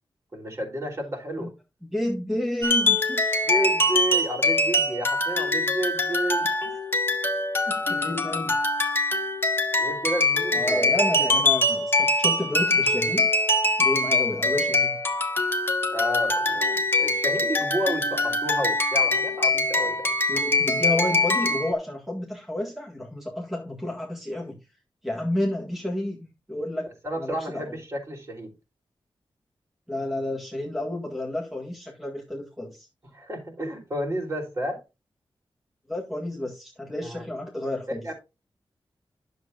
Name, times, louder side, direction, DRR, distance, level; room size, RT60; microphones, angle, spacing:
voice 1, 0.3-1.5 3.4-6.5 9.8-11.4 15.9-20.1 27.0-28.5 33.1-34.8 37.0-37.2 37.9-38.1, right 1 dB, 35° right, 3.3 m, -31 dB
voice 2, 1.9-3.2 7.7-8.6 10.5-13.3 13.8-15.0 20.3-24.6 25.0-26.9 27.2-27.7 29.9-32.9 35.9-38.0, left 1 dB, 5° right, 1.7 m, -30 dB
sound 1, 2.6-21.7, left 2 dB, 25° left, 1.5 m, -23 dB
11.0 x 6.9 x 2.5 m
wide cardioid pair, 140°, 9 cm